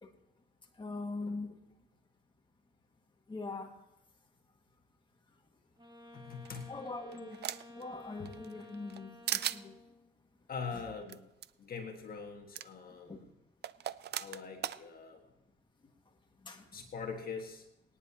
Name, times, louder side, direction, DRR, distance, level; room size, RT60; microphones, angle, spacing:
voice 1, 0.8-1.5 3.3-3.8 6.7-7.4 7.7-9.8 13.1-13.2 16.4-16.7, left 3 dB, 25° left, 2 dB, 1.9 m, -42 dB
Wind instrument woodwind instrument, 5.8-10.1, left 1 dB, 20° right, 2.3 m, -54 dB
voice 2, 6.1-6.7 10.5-11.2 11.6-13.3 14.1-15.2 16.7-17.7, left 5 dB, 50° left, 2 dB, 1.6 m, -43 dB
sound 1, 6.4-7.8 8.3-9.0 9.3-9.6 11.1-11.2 11.4-11.5 12.5-12.7 13.6-14.8, right 11 dB, 55° right, 0.5 m, -37 dB
23.5 x 10.0 x 2.9 m, 0.95 s
cardioid pair, 90°, 20 cm